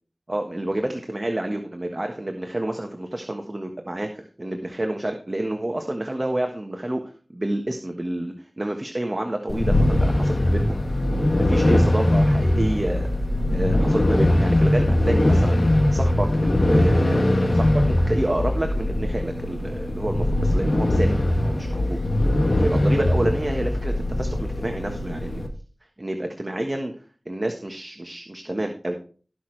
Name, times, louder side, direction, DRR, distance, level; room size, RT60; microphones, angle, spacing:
voice 1, 0.3-7.0 7.3-10.8 11.3-13.1 13.5-15.6 15.9-22.0 22.6-25.4 26.0-26.9 27.2-28.9, right 1 dB, 35° right, 4 dB, 1.4 m, -28 dB
sound 1, 9.5-25.5, left 1 dB, 60° left, 2.2 m, -21 dB
18.0 x 6.2 x 3.3 m, 0.40 s
wide cardioid pair, 60°, 0 cm